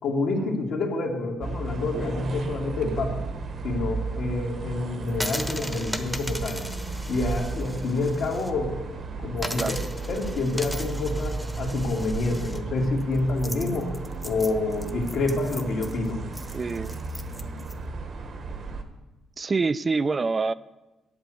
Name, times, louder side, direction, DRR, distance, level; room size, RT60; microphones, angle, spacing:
voice 1, 0.0-3.2 3.6-6.6 7.1-8.8 9.2-9.7 10.1-16.4, left 2 dB, 65° left, 0 dB, 2.4 m, -28 dB
sound 1, 1.4-18.8, right 4 dB, 55° right, 1.3 m, -34 dB
sound 2, 5.1-8.5 8.8-8.9 9.4-17.7, equal, ahead, 1.1 m, -38 dB
voice 2, 16.5-17.0 19.4-20.5, right 4 dB, 30° right, 16 dB, 0.3 m, -26 dB
9.0 x 8.5 x 7.6 m, 1.1 s
cardioid pair, 90°, 0 cm